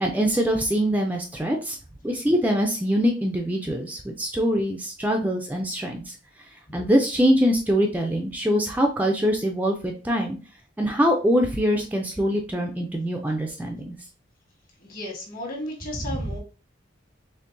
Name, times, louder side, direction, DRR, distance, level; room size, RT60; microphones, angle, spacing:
voice 1, 0.0-1.8 2.0-6.1 6.7-10.4 10.8-14.0 16.0-16.1, equal, 10° right, 2 dB, 0.3 m, -23 dB
voice 2, 14.8-16.4, left 1 dB, 45° left, -1 dB, 1.4 m, -34 dB
4.4 x 3.2 x 2.6 m, 0.34 s
head